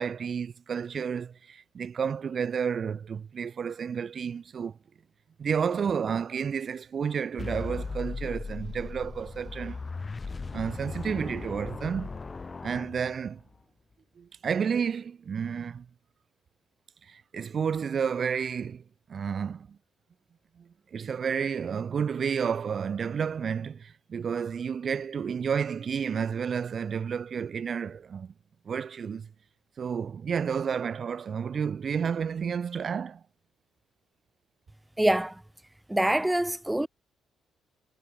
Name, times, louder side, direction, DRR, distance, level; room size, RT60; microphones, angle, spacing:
voice 1, 0.0-4.8 5.4-9.8 10.5-12.1 12.6-13.4 14.2-15.9 17.1-18.8 19.1-19.7 20.6-20.7 20.9-28.3 28.7-29.3 29.8-33.2, right 7 dB, 50° right, 0.7 m, -31 dB
sound 1, 7.4-13.6, left 4 dB, 30° left, 1.1 m, -37 dB
voice 2, 35.0-35.4 35.9-36.9, right 1 dB, 10° right, 0.8 m, -25 dB
cardioid pair, 90°, 0 cm